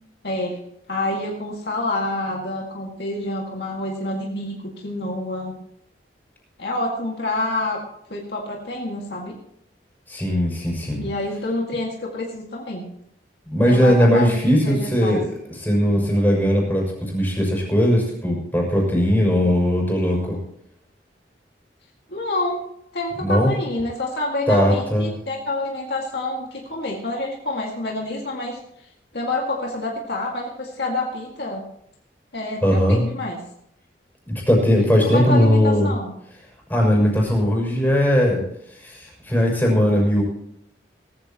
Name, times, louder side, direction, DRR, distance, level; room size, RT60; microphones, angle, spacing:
voice 1, 0.2-0.6 0.9-5.6 6.6-7.8 8.1-9.4 11.0-12.9 13.7-15.2 22.1-22.6 22.9-28.6 29.1-31.6 32.3-33.4 35.1-36.1, left 2 dB, 65° left, -1 dB, 2.1 m, -27 dB
voice 2, 10.1-11.0 13.5-15.3 15.6-20.4 23.2-23.5 24.5-25.1 32.6-33.0 34.3-35.9 36.7-38.4 38.8-40.2, equal, 10° left, -1 dB, 6.2 m, -19 dB
19.0 x 14.5 x 3.0 m, 0.73 s
head